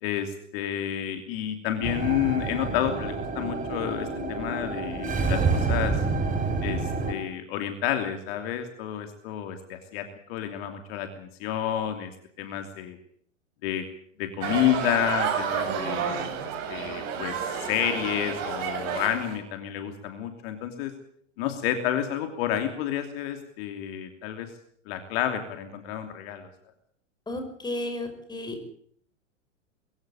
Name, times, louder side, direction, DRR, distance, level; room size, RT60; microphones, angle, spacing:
voice 1, 0.0-6.0 6.6-12.1 12.4-13.0 13.6-13.8 14.2-16.4 16.7-20.9 21.4-24.5 24.9-26.5, left 11 dB, 50° left, 6 dB, 3.0 m, -30 dB
sound 1, 1.8-7.1, right 4 dB, 20° right, 4.4 m, -28 dB
sound 2, 14.4-19.4, right 7 dB, 50° right, 7.1 m, -30 dB
voice 2, 27.3-28.7, left 1 dB, 10° left, 7 dB, 5.8 m, -33 dB
22.5 x 16.0 x 8.7 m, 0.64 s
hypercardioid pair, 105°, 38 cm